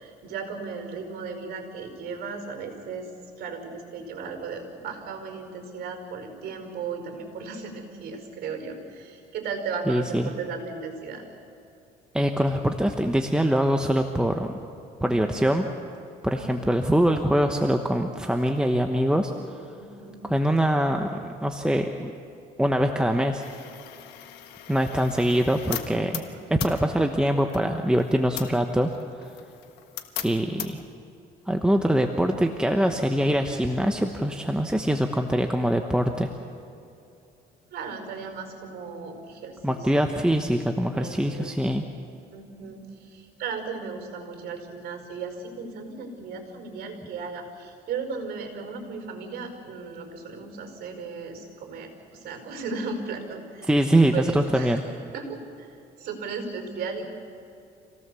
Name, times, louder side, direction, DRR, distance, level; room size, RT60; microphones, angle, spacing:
voice 1, 0.0-3.1 3.4-11.3 15.0-15.4 16.4-16.7 19.8-20.3 26.1-26.5 37.7-39.9 40.9-41.9 42.3-53.7 54.1-54.8 55.1-55.7 56.0-57.0, right 5 dB, 70° right, 4 dB, 5.3 m, -36 dB
voice 2, 9.9-10.3 12.1-14.6 15.0-15.7 16.2-19.3 20.3-22.1 22.6-23.4 24.7-26.2 26.5-28.9 29.2-29.3 30.2-30.8 31.5-36.3 39.6-41.8 53.7-54.8, equal, 5° right, 4 dB, 1.1 m, -23 dB
sound 1, 23.4-30.9, left 11 dB, 80° left, 1.5 m, -39 dB
27.0 x 17.5 x 7.0 m, 2.7 s
cardioid pair, 110°, 17 cm